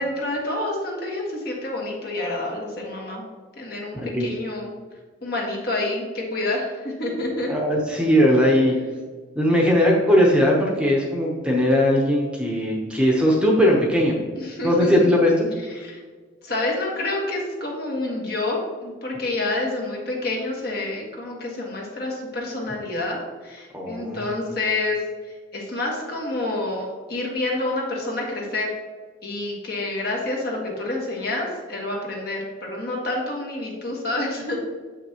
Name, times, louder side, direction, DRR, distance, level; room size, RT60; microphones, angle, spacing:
voice 1, 0.0-3.2 3.6-4.7 5.2-7.5 14.4-15.1 15.7-16.0 16.4-28.7 29.2-34.5, left 2 dB, 50° left, -1 dB, 1.5 m, -28 dB
voice 2, 3.9-4.3 7.4-8.7 9.4-14.2 14.6-15.5 23.7-24.5, equal, 5° right, -2 dB, 0.8 m, -19 dB
7.1 x 5.8 x 2.9 m, 1.4 s
head